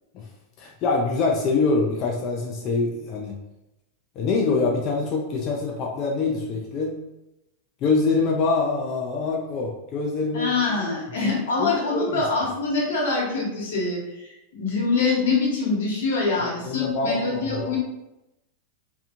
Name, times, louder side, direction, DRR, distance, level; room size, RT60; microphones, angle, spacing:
voice 1, 0.6-3.4 4.2-7.0 7.8-10.5 11.2-11.3 11.6-12.2 16.4-17.8, left 3 dB, 35° left, -1 dB, 0.4 m, -25 dB
voice 2, 10.3-14.3 14.5-17.8, left 3 dB, 80° left, -2 dB, 1.0 m, -24 dB
2.5 x 2.3 x 2.8 m, 0.91 s
supercardioid pair, 150°, 0 cm